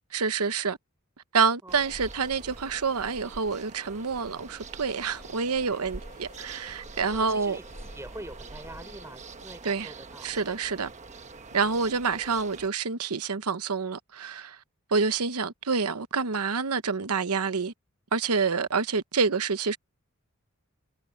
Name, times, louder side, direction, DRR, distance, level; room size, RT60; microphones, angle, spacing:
voice 1, 0.1-0.8 1.3-7.6 9.6-9.9 10.2-10.9 11.5-14.6 14.9-17.7 18.1-19.8, right 5 dB, 85° right, 1.0 m, -27 dB
sound 1, 1.7-12.7, right 3 dB, 30° right, 1.2 m, -45 dB
Train, 3.4-11.6 12.0-12.1, left 3 dB, 40° left, 4.4 m, -59 dB
voice 2, 7.1-10.3, right 1 dB, 10° right, 5.5 m, -45 dB
head